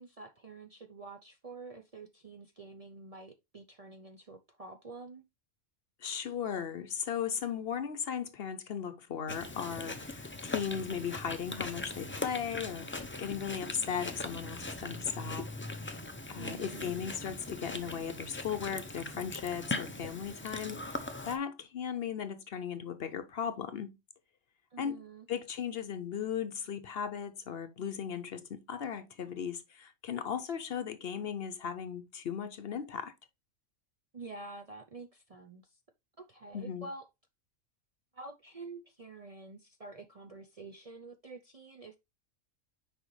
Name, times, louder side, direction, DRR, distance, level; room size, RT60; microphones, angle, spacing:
voice 1, 0.0-5.2 16.4-16.9 24.7-25.3 34.1-35.8 36.2-37.1 38.1-42.0, right 3 dB, 40° right, 0.5 m, -48 dB
voice 2, 6.0-15.5 16.3-23.9 24.8-25.0 25.3-33.1 36.5-36.9, left 7 dB, 60° left, 0.8 m, -37 dB
Chewing mastication, 9.3-21.4, left 2 dB, 20° left, 0.3 m, -40 dB
6.2 x 5.0 x 3.1 m
omnidirectional pair, 1.3 m